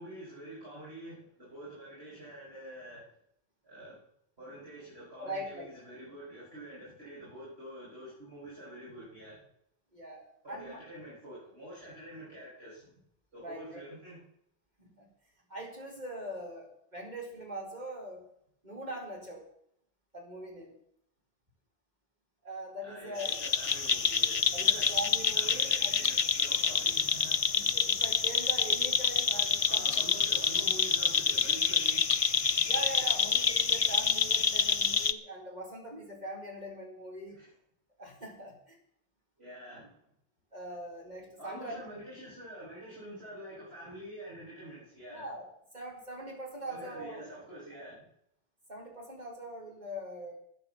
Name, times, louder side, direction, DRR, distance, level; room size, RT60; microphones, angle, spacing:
voice 1, 0.0-3.1 3.6-4.0 4.4-9.4 10.4-12.9 13.3-14.2 22.8-24.9 25.3-27.7 29.7-32.0 37.3-37.5 39.4-40.0 41.4-45.2 46.7-48.1, right 1 dB, 70° right, -8 dB, 6.7 m, -47 dB
voice 2, 5.2-5.7 9.9-10.8 13.4-13.8 14.8-15.1 15.5-18.3 18.6-19.4 20.1-20.7 22.4-23.4 24.5-26.0 27.5-30.3 32.6-37.4 38.0-38.8 40.5-41.8 45.1-45.5 45.7-47.3 47.7-47.8 48.7-50.4, right 1 dB, 40° right, -1 dB, 4.5 m, -42 dB
sound 1, 23.2-35.1, left 6 dB, 35° left, 0.6 m, -27 dB
13.0 x 10.0 x 7.2 m, 0.71 s
omnidirectional pair, 1.1 m